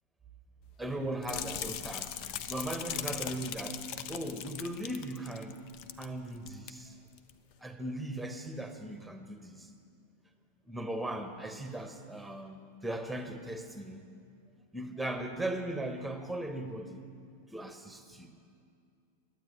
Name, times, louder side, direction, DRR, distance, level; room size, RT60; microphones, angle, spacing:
voice 1, 0.8-3.8 4.1-5.6 6.0-6.9 7.6-9.7 10.7-14.1 14.7-17.0 17.5-18.3, right 1 dB, 5° right, 7 dB, 1.2 m, -38 dB
sound 1, 1.2-6.1 6.3-6.7 7.2-7.3, left 9 dB, 45° left, 0.7 m, -39 dB
12.0 x 9.1 x 9.7 m, 2.4 s
figure-of-eight pair, 90°, 0 cm